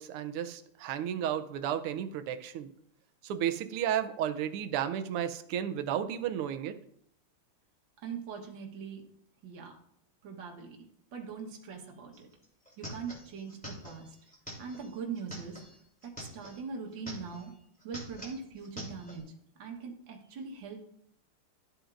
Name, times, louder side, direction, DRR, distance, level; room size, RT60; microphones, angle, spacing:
voice 1, 0.0-2.7 3.2-6.8, right 10 dB, 85° right, 10 dB, 1.6 m, -33 dB
voice 2, 8.0-9.0 9.4-9.7 10.2-10.8 11.1-12.3 12.8-14.1 14.6-15.6 16.3-17.5 17.8-19.2 19.6-20.8, right 5 dB, 60° right, 1 dB, 1.9 m, -41 dB
sound 1, 12.1-12.2 12.4-16.6 16.9-17.5 17.8-19.2, equal, 5° left, 3.0 m, -45 dB
12.5 x 7.9 x 2.5 m, 0.69 s
omnidirectional pair, 2.4 m